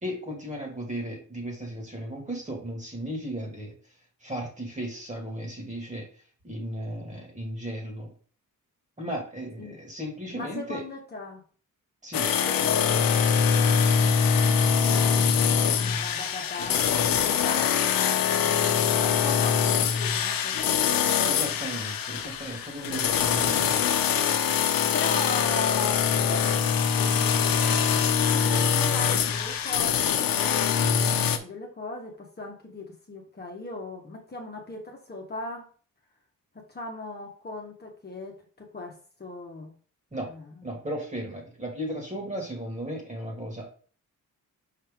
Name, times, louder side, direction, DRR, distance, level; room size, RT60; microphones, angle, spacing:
voice 1, 0.0-3.7 4.2-6.1 6.4-8.1 9.0-10.8 12.0-12.3 21.3-23.9 40.1-40.3 40.6-43.7, equal, 20° right, 1 dB, 2.3 m, -35 dB
voice 2, 10.3-11.4 12.5-17.9 18.3-21.8 24.9-27.9 28.3-30.4 30.7-35.7 36.5-39.7 40.2-40.6, left 3 dB, 30° left, -1 dB, 1.4 m, -38 dB
sound 1, 12.1-31.4, left 7 dB, 90° left, 0.9 m, -23 dB
5.8 x 5.5 x 3.7 m, 0.42 s
wide cardioid pair, 135°, 33 cm